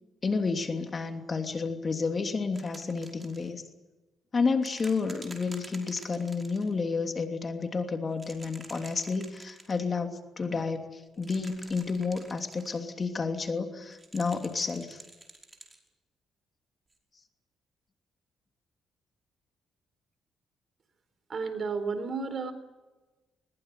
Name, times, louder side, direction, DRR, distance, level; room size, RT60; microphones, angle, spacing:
voice 1, 0.2-3.6 4.3-15.0, left 4 dB, 35° left, 6 dB, 3.0 m, -31 dB
sound 1, 2.5-3.5 4.6-6.7 8.1-9.8 11.1-12.8 13.9-15.8 16.9-17.0, right 2 dB, 20° right, 5.3 m, -49 dB
voice 2, 21.3-22.5, right 4 dB, 45° right, 10 dB, 4.1 m, -32 dB
21.5 x 20.5 x 9.7 m, 1.2 s
cardioid pair, 90°, 0 cm